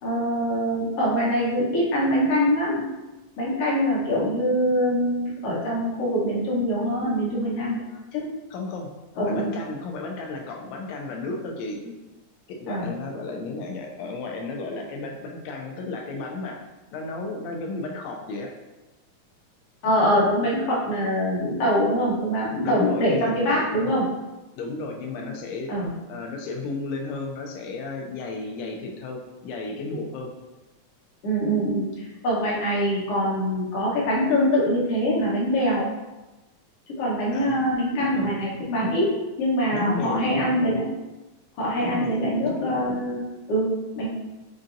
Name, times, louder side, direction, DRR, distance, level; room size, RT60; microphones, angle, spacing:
voice 1, 0.0-2.9 3.4-7.8 8.1-8.2 9.2-9.5 12.7-12.9 19.8-24.1 25.7-25.9 31.2-35.9 36.9-39.1 39.4-40.9 41.6-44.1, equal, 60° left, -6 dB, 1.8 m, -24 dB
voice 2, 8.5-8.9 9.2-11.9 12.5-16.6 16.9-18.5 22.6-23.6 24.6-25.7 26.1-30.3 37.3-37.7 38.2-38.3 39.7-40.5 41.8-42.3, left 3 dB, 80° left, 1 dB, 1.6 m, -33 dB
5.5 x 2.6 x 2.5 m, 1.1 s
omnidirectional pair, 3.5 m